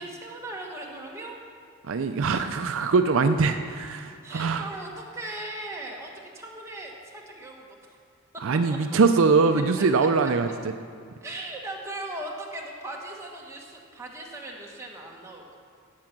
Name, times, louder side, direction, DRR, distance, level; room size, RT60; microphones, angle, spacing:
voice 1, 0.0-1.4 4.2-7.8 9.5-9.6 11.2-15.6, right 1 dB, 15° right, -1 dB, 1.5 m, -38 dB
voice 2, 1.9-4.7 8.4-10.5, right 4 dB, 60° right, 8 dB, 0.5 m, -22 dB
12.5 x 8.2 x 5.9 m, 2.2 s
head